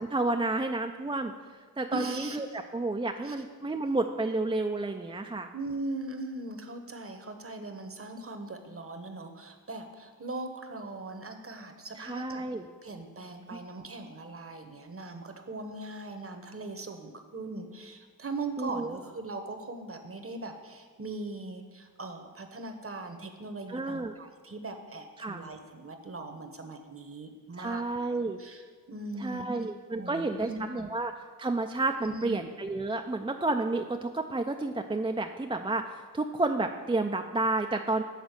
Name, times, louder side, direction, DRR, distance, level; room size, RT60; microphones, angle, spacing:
voice 1, 0.0-1.3 1.8-5.5 12.0-12.7 13.5-13.6 18.6-19.0 23.7-24.1 25.2-25.4 27.6-28.4 29.2-31.1 31.4-38.0, right 2 dB, 15° right, 4 dB, 0.4 m, -31 dB
voice 2, 1.9-2.6 3.2-3.4 5.5-12.4 12.8-29.5 30.0-30.9 32.0-32.4, right 2 dB, 40° right, 6 dB, 1.0 m, -40 dB
8.2 x 3.9 x 6.5 m, 1.5 s
cardioid pair, 45°, 36 cm